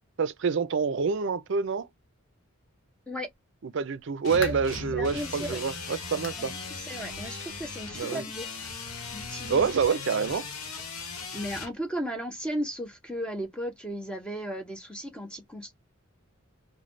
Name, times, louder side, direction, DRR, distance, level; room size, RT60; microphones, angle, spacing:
voice 1, 0.2-1.9 3.6-6.5 7.9-8.3 9.5-10.4, right 5 dB, 55° right, 0.4 m, -27 dB
sound 1, 4.0-4.8 5.3-5.5 6.2-6.5 6.8-6.9 7.4-7.5 8.6-8.7, left 7 dB, 60° left, 0.5 m, -41 dB
sound 2, 4.2-11.7, left 3 dB, 85° left, 1.0 m, -38 dB
voice 2, 4.9-5.6 6.4-8.5 9.1-9.7 11.3-15.7, equal, 5° left, 0.6 m, -35 dB
3.2 x 2.1 x 2.5 m
head